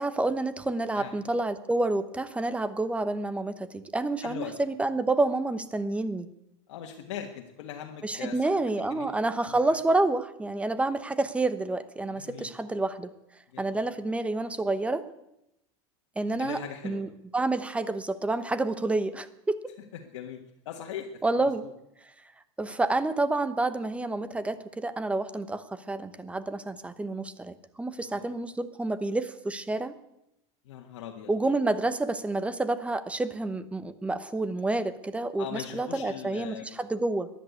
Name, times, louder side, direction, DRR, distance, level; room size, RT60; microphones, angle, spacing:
voice 1, 0.0-6.3 8.0-13.1 13.6-15.1 16.2-16.6 16.8-19.6 21.2-21.6 22.6-29.9 31.3-37.3, right 2 dB, 10° right, 13 dB, 1.0 m, -29 dB
voice 2, 4.2-4.5 6.7-8.6 8.9-9.1 9.4-9.8 12.0-12.5 13.5-13.8 16.4-17.0 18.5-18.7 19.9-21.7 28.0-28.3 30.6-31.3 35.4-36.8, left 9 dB, 85° left, 2 dB, 1.7 m, -41 dB
14.5 x 11.0 x 8.4 m, 0.87 s
supercardioid pair, 130°, 15 cm